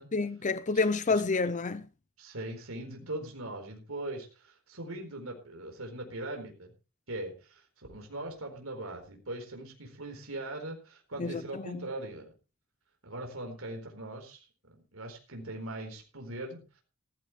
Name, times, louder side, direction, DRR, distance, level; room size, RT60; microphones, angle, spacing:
voice 1, 0.1-1.9 11.2-11.9, left 3 dB, 35° left, 0.6 m, -29 dB
voice 2, 2.2-6.7 7.1-12.3 13.0-16.8, right 1 dB, 80° right, 4.4 m, -40 dB
16.5 x 15.0 x 3.2 m
head